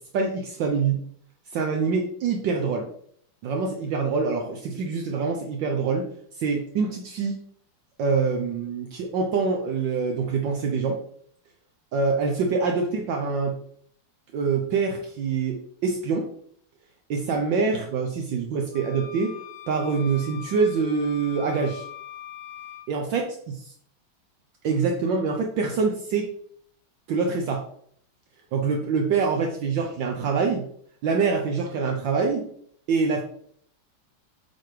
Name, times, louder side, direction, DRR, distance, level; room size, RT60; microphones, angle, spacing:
voice 1, 0.1-1.0 1.5-2.9 3.4-6.1 6.4-7.4 8.0-11.0 11.9-13.6 14.3-16.3 17.1-19.4 19.7-21.8 22.9-23.2 24.6-26.3 27.1-27.6 28.5-30.7 31.0-32.5 32.9-33.2, right 5 dB, 70° right, 2 dB, 1.4 m, -25 dB
sound 1, 18.7-22.9, left 10 dB, 85° left, 1.5 m, -42 dB
8.3 x 4.2 x 3.2 m, 0.64 s
omnidirectional pair, 2.2 m